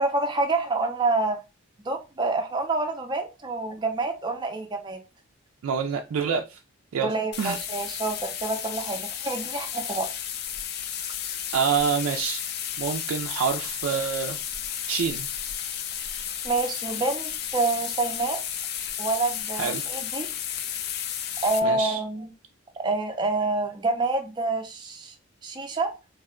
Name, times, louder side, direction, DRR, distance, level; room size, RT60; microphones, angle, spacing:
voice 1, 0.0-1.4 1.8-5.0 7.0-10.1 16.4-18.4 19.0-20.3 21.4-22.3 22.8-25.1 25.4-25.9, right 3 dB, 20° right, 0.4 m, -27 dB
voice 2, 5.6-6.6 6.9-7.1 7.4-7.6 11.5-12.4 12.8-14.4 14.9-15.3 19.5-19.8 21.6-22.0, right 6 dB, 85° right, 0.3 m, -27 dB
sound 1, 7.3-21.6, left 9 dB, 50° left, 0.3 m, -33 dB
2.6 x 2.1 x 3.6 m
head